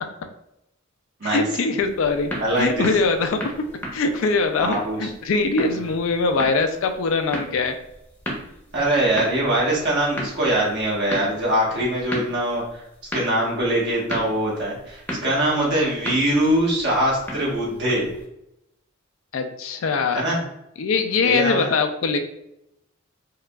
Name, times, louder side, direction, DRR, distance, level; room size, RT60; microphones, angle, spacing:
voice 1, 1.2-3.4 3.9-7.8 19.3-20.2 20.8-22.2, left 4 dB, 70° left, 6 dB, 0.4 m, -22 dB
sound 1, 1.8-18.2, equal, 10° left, 0.8 m, -36 dB
voice 2, 2.4-2.8 4.6-5.1 8.7-12.8 13.1-18.0 20.1-20.4 21.2-21.7, right 1 dB, 60° right, -5 dB, 1.3 m, -22 dB
4.6 x 2.4 x 2.3 m, 0.84 s
head